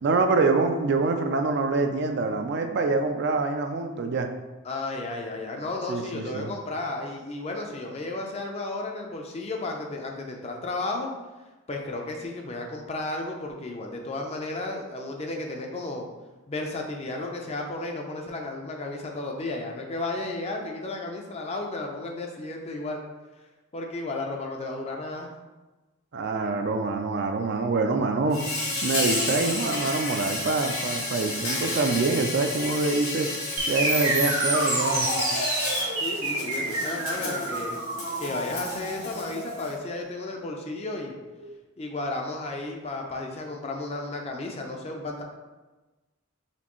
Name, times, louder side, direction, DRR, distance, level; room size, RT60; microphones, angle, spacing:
voice 1, 0.0-4.3 5.9-6.5 26.1-28.4 28.8-33.3 33.7-35.5, right 3 dB, 50° right, 5 dB, 0.3 m, -25 dB
voice 2, 4.6-11.1 11.7-16.1 16.5-23.0 23.7-25.3 36.0-37.8 38.2-41.1 41.8-45.2, left 2 dB, 30° left, 1 dB, 0.4 m, -33 dB
Insect, 28.3-39.7, left 2 dB, 85° left, 1.3 m, -31 dB
sound 1, 33.6-41.5, right 2 dB, 90° right, 1.4 m, -29 dB
4.2 x 3.2 x 3.0 m, 1.2 s
head